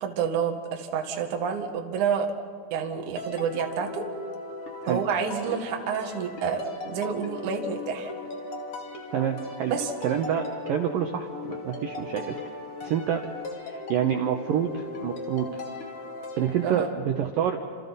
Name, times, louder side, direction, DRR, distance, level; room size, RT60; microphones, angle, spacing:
voice 1, 0.0-2.3 2.7-4.1 4.9-8.1 9.7-9.9 16.6-16.9, right 7 dB, 55° right, 3 dB, 2.5 m, -29 dB
sound 1, 3.2-16.9, left 2 dB, 40° left, 2.3 m, -38 dB
voice 2, 9.1-9.7 10.0-12.3 12.8-13.2 13.7-15.5 16.4-17.6, right 9 dB, 80° right, 4 dB, 2.0 m, -27 dB
29.5 x 27.5 x 4.1 m, 2.2 s
omnidirectional pair, 5.4 m